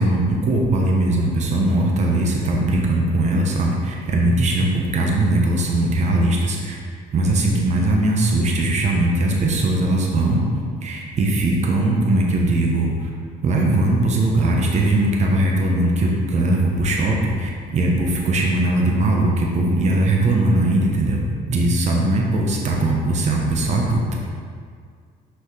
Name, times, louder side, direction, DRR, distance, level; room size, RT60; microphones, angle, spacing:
voice 1, 0.0-6.8 7.1-10.4 10.8-13.1 13.4-21.2 21.5-24.2, right 2 dB, 45° right, -1 dB, 1.0 m, -20 dB
5.6 x 5.6 x 3.3 m, 2.1 s
cardioid pair, 110°, 17 cm